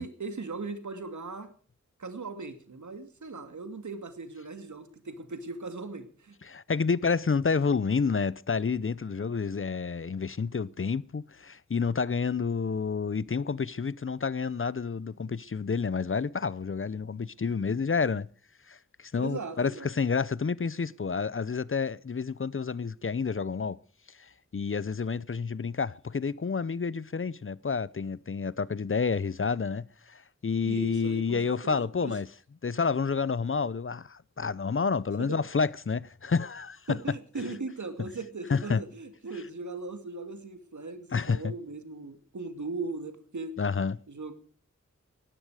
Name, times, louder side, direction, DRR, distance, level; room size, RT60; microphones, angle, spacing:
voice 1, 0.0-1.5 2.0-6.3 19.2-19.9 30.6-32.1 35.2-35.4 36.9-43.5 44.1-44.3, right 3 dB, 80° right, 2.5 m, -38 dB
voice 2, 6.5-18.3 18.7-23.8 24.2-32.3 32.6-37.2 38.5-38.8 41.1-41.5 43.6-44.0, left 5 dB, 45° left, 0.7 m, -29 dB
19.0 x 14.0 x 4.9 m
wide cardioid pair, 70°, 29 cm